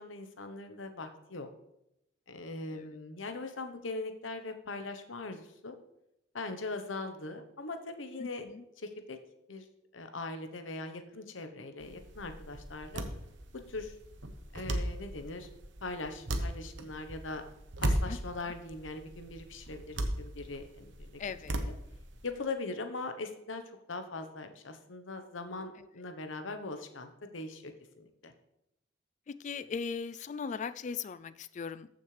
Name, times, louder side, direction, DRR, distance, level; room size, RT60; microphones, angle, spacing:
voice 1, 0.0-1.5 2.3-5.8 6.3-8.5 8.8-9.2 9.5-9.6 9.9-13.0 13.7-13.9 14.5-15.5 15.8-17.4 17.8-21.2 21.7-21.8 22.2-23.6 23.9-28.3, left 3 dB, 85° left, 7 dB, 1.0 m, -41 dB
sound 1, 11.8-22.3, right 1 dB, 70° right, 1.0 m, -37 dB
voice 2, 21.2-21.5 29.3-31.9, left 5 dB, 40° left, 15 dB, 0.3 m, -38 dB
14.0 x 6.4 x 3.3 m, 0.84 s
head